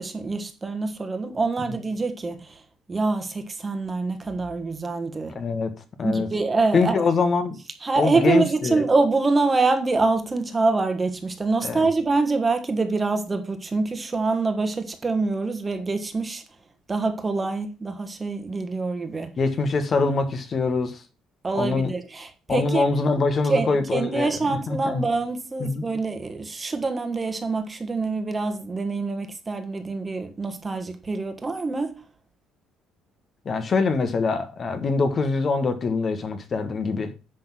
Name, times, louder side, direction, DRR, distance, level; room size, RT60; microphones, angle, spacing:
voice 1, 0.0-2.6 2.9-5.3 6.0-7.0 7.8-16.4 16.9-19.3 21.4-22.8 23.5-31.9, right 3 dB, 25° right, 1.5 m, -25 dB
voice 2, 5.3-5.7 6.0-6.3 6.7-7.6 8.0-8.8 11.6-11.9 19.4-21.0 21.5-21.9 22.5-25.0 25.6-25.8 33.4-37.1, left 4 dB, 40° left, 1.4 m, -24 dB
10.0 x 3.8 x 6.1 m
cardioid pair, 100°, 0 cm